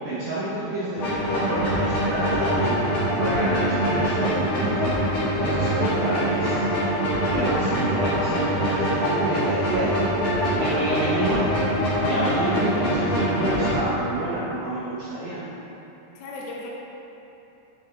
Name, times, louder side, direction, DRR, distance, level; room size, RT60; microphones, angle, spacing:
voice 1, 0.0-5.0 5.2-6.6 7.2-10.0 10.5-11.5 12.0-15.4, right 1 dB, 75° right, -8 dB, 2.0 m, -29 dB
sound 1, 1.0-13.8, equal, 55° left, 2.5 m, -24 dB
voice 2, 9.4-9.8 16.1-16.7, left 2 dB, 85° left, -2 dB, 2.6 m, -37 dB
8.3 x 5.6 x 3.1 m, 3.0 s
omnidirectional pair, 5.0 m